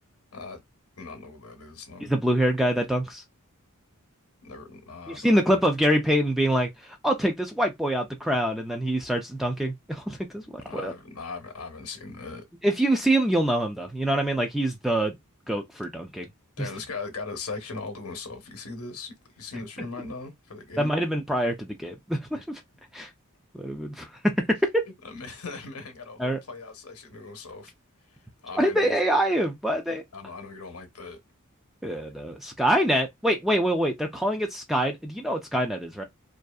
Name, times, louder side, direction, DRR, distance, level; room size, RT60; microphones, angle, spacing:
voice 1, 0.3-0.6 1.0-2.1 4.4-5.6 10.7-12.4 16.6-20.9 22.3-22.4 25.0-27.7 28.1-28.9 30.1-31.2, left 4 dB, 75° left, 0.8 m, -39 dB
voice 2, 2.0-3.2 5.1-10.9 12.6-15.1 15.5-16.3 20.8-22.4 22.9-23.1 23.6-24.8 26.2-26.4 28.6-30.0 31.8-36.0, right 1 dB, ahead, 0.3 m, -25 dB
2.6 x 2.4 x 2.2 m
head